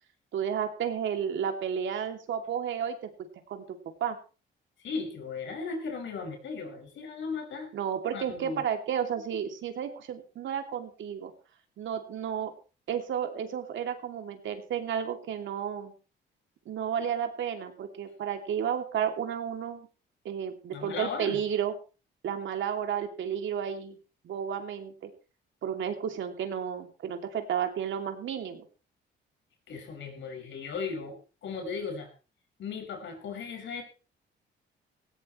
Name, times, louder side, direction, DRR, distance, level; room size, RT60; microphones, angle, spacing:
voice 1, 0.3-4.2 7.7-11.3 11.8-12.5 12.9-15.9 16.7-19.9 20.2-21.7 22.2-24.0 24.2-25.1 25.6-28.7, right 8 dB, 70° right, 5 dB, 2.9 m, -32 dB
voice 2, 4.8-7.7 8.1-8.6 20.7-21.4 29.7-32.1 32.6-33.8, left 4 dB, 70° left, 4 dB, 6.2 m, -36 dB
18.5 x 16.5 x 3.2 m, 0.35 s
cardioid pair, 90°, 20 cm